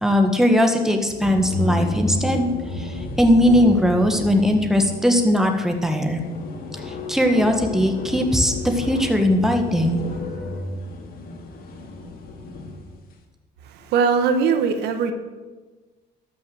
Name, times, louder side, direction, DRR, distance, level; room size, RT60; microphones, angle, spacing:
voice 1, 0.0-2.5 2.7-6.2 6.9-10.0, equal, 5° right, 4 dB, 1.6 m, -19 dB
sound 1, 1.0-13.0, left 1 dB, 60° left, 2.3 m, -31 dB
voice 2, 13.6-15.1, right 6 dB, 80° right, 8 dB, 1.3 m, -20 dB
12.5 x 6.3 x 7.7 m, 1.3 s
cardioid pair, 110°, 17 cm